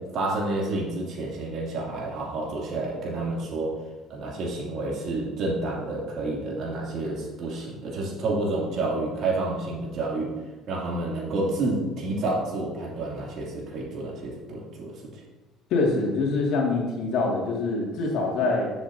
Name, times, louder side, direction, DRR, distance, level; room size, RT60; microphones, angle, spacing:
voice 1, 0.1-3.7 4.1-10.3 10.7-15.1, right 2 dB, 55° right, -3 dB, 2.6 m, -29 dB
voice 2, 15.7-18.7, left 3 dB, 70° left, -1 dB, 2.2 m, -25 dB
11.0 x 7.1 x 2.8 m, 1.2 s
cardioid pair, 125°, 0 cm